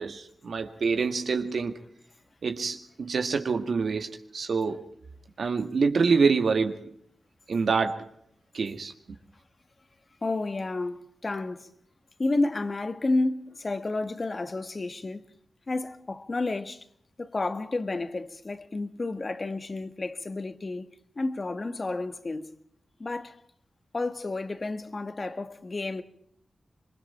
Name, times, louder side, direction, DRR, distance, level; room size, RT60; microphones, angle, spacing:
voice 1, 0.0-1.7 2.4-4.9 5.4-6.9 7.5-8.0 8.5-8.9, right 5 dB, 75° right, 1.8 m, -26 dB
voice 2, 10.2-11.7 12.2-15.2 15.7-16.9 17.2-22.5 23.0-23.4 23.9-26.0, left 2 dB, 45° left, 1.7 m, -31 dB
27.0 x 23.0 x 4.4 m
cardioid pair, 55°, 0 cm